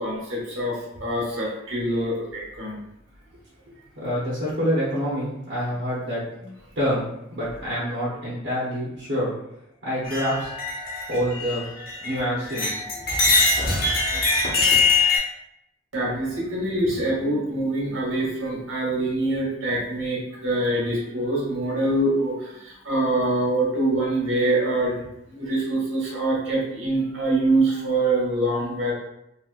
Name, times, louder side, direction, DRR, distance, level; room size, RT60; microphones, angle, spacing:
voice 1, 0.0-2.8 15.9-28.9, right 2 dB, 90° right, -4 dB, 1.2 m, -25 dB
voice 2, 4.0-9.3 9.8-10.5 11.1-11.7 12.0-12.8, equal, 70° right, -8 dB, 0.9 m, -27 dB
sound 1, 10.0-12.2 12.5-15.2, left 3 dB, 50° left, 0.8 m, -22 dB
2.9 x 2.8 x 2.3 m, 0.83 s
head